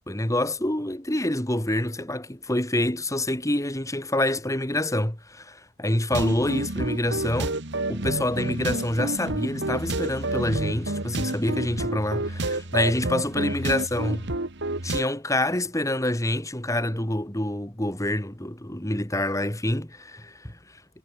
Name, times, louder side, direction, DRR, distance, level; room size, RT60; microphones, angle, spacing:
voice 1, 0.1-7.6 7.9-14.3 14.8-20.6, left 1 dB, 15° left, 2.6 m, -27 dB
sound 1, 6.1-15.0, right 2 dB, 60° right, 2.7 m, -29 dB
head